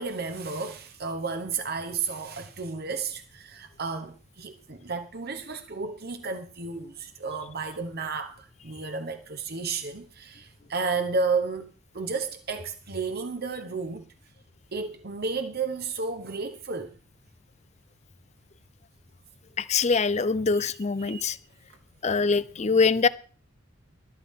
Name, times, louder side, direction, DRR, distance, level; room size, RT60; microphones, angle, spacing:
voice 1, 0.0-14.1 14.7-16.9 20.5-20.7 21.0-21.4, right 4 dB, 50° right, 1.0 m, -32 dB
voice 2, 19.6-21.4 22.0-23.1, left 4 dB, 35° left, 0.5 m, -23 dB
13.0 x 13.0 x 3.7 m
head